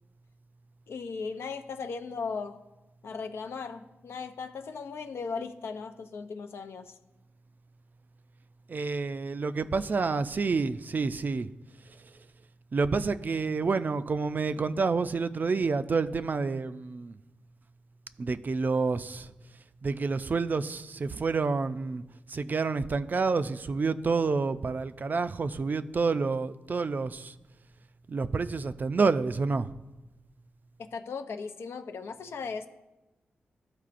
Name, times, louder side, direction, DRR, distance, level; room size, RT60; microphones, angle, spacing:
voice 1, 0.9-2.6 3.0-6.9 30.8-32.7, left 5 dB, 80° left, 0.5 m, -37 dB
voice 2, 8.7-11.5 12.7-17.1 18.2-19.3 19.8-22.0 22.3-27.4 28.1-29.8, right 4 dB, 45° right, 0.4 m, -28 dB
13.0 x 4.7 x 2.5 m
cardioid pair, 70°, 4 cm